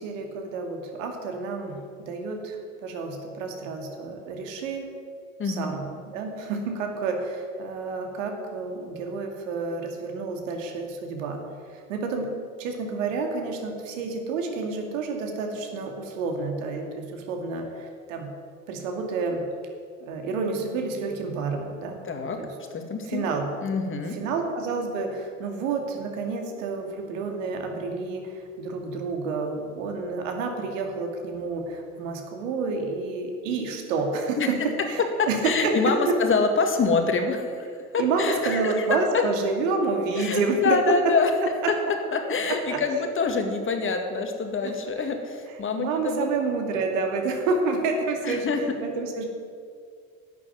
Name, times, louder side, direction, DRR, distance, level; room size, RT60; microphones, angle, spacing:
voice 1, 0.0-4.9 5.4-11.4 11.7-12.3 12.6-18.3 18.7-19.4 20.0-22.0 22.4-22.5 23.1-23.5 24.1-34.6 34.9-36.1 38.0-40.8 42.7-42.8 45.8-48.5 48.8-49.3, right 4 dB, 65° right, 3 dB, 2.5 m, -29 dB
voice 2, 5.4-5.7 22.0-22.4 22.7-23.2 23.6-24.1 34.4-34.5 35.2-37.7 37.9-38.9 39.1-39.2 40.1-41.3 42.1-46.3 48.2-48.6, left 4 dB, 30° left, 5 dB, 2.1 m, -26 dB
12.0 x 8.5 x 9.4 m, 2.1 s
figure-of-eight pair, 70°, 41 cm